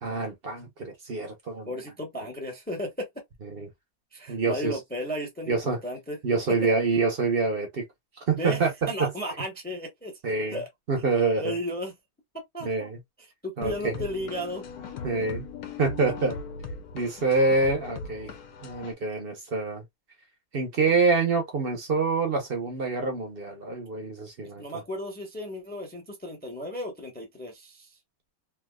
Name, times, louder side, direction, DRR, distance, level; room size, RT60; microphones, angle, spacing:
voice 1, 0.0-1.7 3.5-3.7 4.3-4.8 5.5-5.8 6.2-7.8 8.3-9.1 10.2-10.6 10.9-11.6 12.6-13.0 13.6-14.0 15.0-15.5 15.8-16.4 16.9-18.3 18.6-19.8 20.5-24.6, right 4 dB, 45° right, 0.9 m, -26 dB
voice 2, 1.7-3.1 4.1-5.6 5.8-6.2 8.4-10.1 10.5-10.7 11.3-11.9 12.5-12.9 13.4-14.7 16.1-16.2 24.4-27.9, equal, 10° left, 0.8 m, -34 dB
sound 1, 13.6-18.9, left 5 dB, 85° left, 1.3 m, -39 dB
3.4 x 2.7 x 2.2 m
omnidirectional pair, 1.6 m